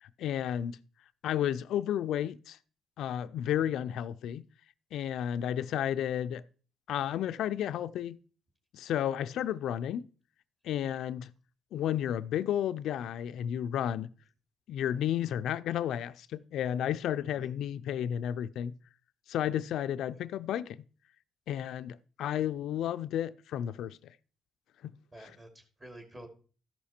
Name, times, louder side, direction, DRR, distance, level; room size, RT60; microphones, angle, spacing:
voice 1, 0.0-0.8 1.2-2.6 3.0-4.4 4.9-6.4 6.9-8.2 8.7-10.1 10.6-11.3 11.7-14.1 14.7-18.7 19.3-20.8 21.5-24.1 24.8-24.9, left 10 dB, 80° left, 0.3 m, -32 dB
voice 2, 25.1-26.3, right 1 dB, 25° right, 2.7 m, -51 dB
13.5 x 5.8 x 4.3 m
cardioid pair, 90°, 0 cm